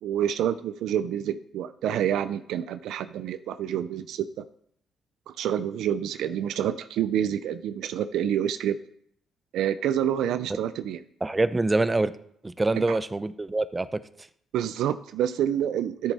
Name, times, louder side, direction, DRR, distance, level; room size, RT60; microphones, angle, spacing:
voice 1, 0.0-4.4 5.3-8.8 9.5-11.0 12.8-13.0 14.5-16.1, right 10 dB, 85° right, 12 dB, 0.4 m, -28 dB
voice 2, 11.2-12.1 12.4-14.0, right 2 dB, 20° right, 14 dB, 0.6 m, -25 dB
13.0 x 7.2 x 4.1 m, 0.68 s
cardioid pair, 90°, 0 cm